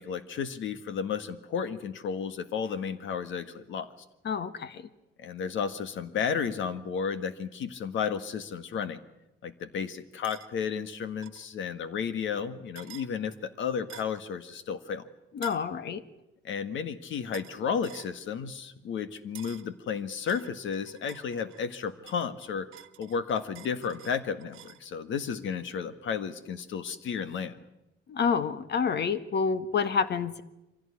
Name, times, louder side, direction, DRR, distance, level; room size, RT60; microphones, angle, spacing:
voice 1, 0.0-3.9 5.2-9.0 9.4-15.0 16.4-22.7 23.0-27.6, left 6 dB, 75° left, 12 dB, 1.7 m, -33 dB
voice 2, 4.2-4.9 15.3-16.0 28.1-30.4, left 6 dB, 60° left, 13 dB, 1.5 m, -28 dB
sound 1, 10.2-10.5 11.2-11.4 12.7-13.1 13.9-14.2 15.4-15.7 17.3-17.6 17.8-18.1 19.3-19.7 20.3-21.7 22.1-24.8, right 13 dB, 85° right, 1.3 m, -49 dB
24.0 x 16.0 x 9.9 m, 0.94 s
cardioid pair, 90°, 20 cm